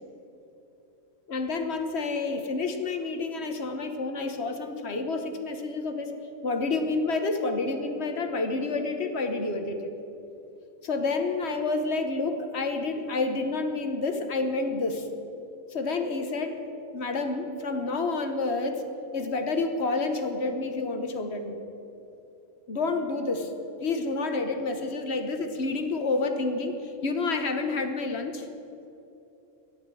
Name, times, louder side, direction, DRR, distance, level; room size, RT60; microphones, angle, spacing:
voice 1, 1.3-6.1 6.4-9.8 10.8-15.1 15.7-16.6 16.9-18.8 19.1-21.6 22.7-23.5 23.8-28.5, left 3 dB, 55° left, 6 dB, 1.3 m, -29 dB
13.0 x 10.5 x 7.7 m, 2.9 s
omnidirectional pair, 1.3 m